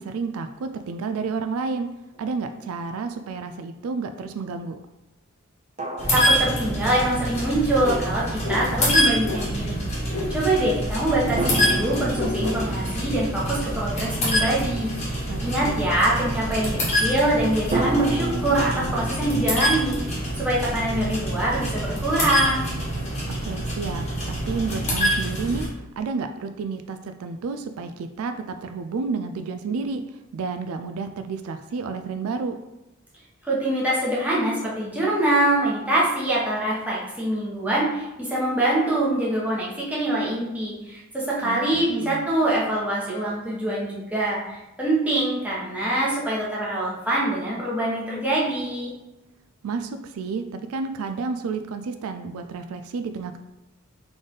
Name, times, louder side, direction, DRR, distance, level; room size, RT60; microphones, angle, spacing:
voice 1, 0.0-1.9 2.2-4.8 15.3-15.9 23.4-25.7 26.0-30.0 30.3-32.6 41.4-42.2 49.6-53.4, right 4 dB, 80° right, 8 dB, 0.3 m, -31 dB
sound 1, 2.2-2.3 5.8-7.3 11.4-15.0 17.7-20.5, right 1 dB, 30° right, 0.6 m, -31 dB
sound 2, 6.0-25.7, equal, 30° left, 1.3 m, -26 dB
voice 2, 6.1-22.7 33.4-48.9, right 1 dB, 5° right, -6 dB, 1.1 m, -24 dB
sound 3, 7.8-8.0 8.4-8.6 9.2-9.4 10.0-10.3 11.3-11.4 12.1-12.6, left 2 dB, 75° left, 0.9 m, -30 dB
4.0 x 3.4 x 3.8 m, 0.97 s
head